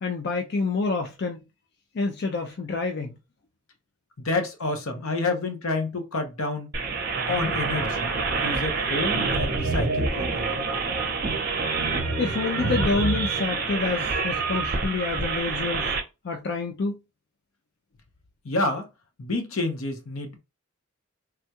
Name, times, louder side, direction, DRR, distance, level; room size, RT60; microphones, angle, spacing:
voice 1, 0.0-1.4 1.9-3.1 12.2-15.9 16.2-17.0, left 3 dB, 50° left, 0.4 m, -27 dB
voice 2, 4.2-6.7 7.3-8.1 8.4-10.6 18.4-18.9 19.2-20.4, left 2 dB, 80° left, 0.8 m, -29 dB
sound 1, 6.7-16.0, right 4 dB, 45° right, 0.6 m, -27 dB
3.4 x 2.3 x 2.8 m
head